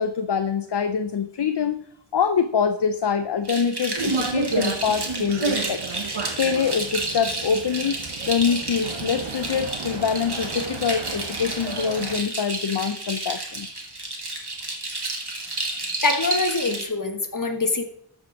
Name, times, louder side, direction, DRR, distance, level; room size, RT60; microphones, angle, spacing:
voice 1, 0.0-1.8 2.1-5.8 6.4-13.7, left 6 dB, 65° left, 10 dB, 0.6 m, -25 dB
sound 1, 3.5-16.8, right 2 dB, 60° right, 2.4 m, -31 dB
sound 2, 4.0-12.2, right 4 dB, 90° right, 1.1 m, -32 dB
voice 2, 16.0-17.8, left 3 dB, 45° left, 6 dB, 1.5 m, -24 dB
13.5 x 5.4 x 5.9 m, 0.70 s
wide cardioid pair, 60°, 45 cm